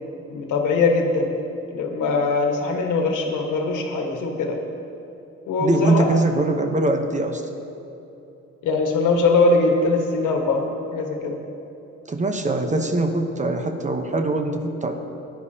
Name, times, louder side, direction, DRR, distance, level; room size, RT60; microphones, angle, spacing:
voice 1, 0.3-1.3 1.7-4.6 5.5-6.1 8.6-10.6 10.9-11.4, left 3 dB, 80° left, 2 dB, 1.5 m, -21 dB
voice 2, 5.6-7.4 12.1-15.0, right 2 dB, 25° right, 5 dB, 0.9 m, -22 dB
15.0 x 10.5 x 2.8 m, 2.9 s
cardioid pair, 90°, 30 cm